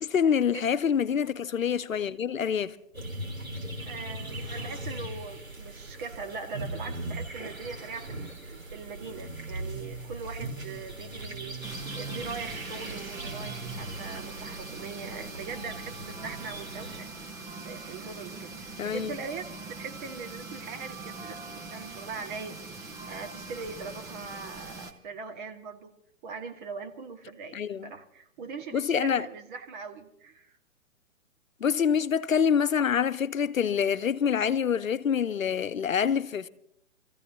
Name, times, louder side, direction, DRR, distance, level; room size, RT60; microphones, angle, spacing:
voice 1, 0.0-2.8 18.8-19.1 27.5-27.9 28.7-29.3 31.6-36.5, left 7 dB, 80° left, 0.8 m, -26 dB
sound 1, 2.9-17.0, right 2 dB, 85° right, 3.9 m, -39 dB
voice 2, 3.8-17.1 17.6-22.6 23.1-25.9 26.2-27.6 27.8-30.5, right 5 dB, 40° right, 1.7 m, -41 dB
sound 2, 11.6-24.9, right 3 dB, 10° right, 0.5 m, -42 dB
27.5 x 15.0 x 2.7 m
figure-of-eight pair, 125°, 40 cm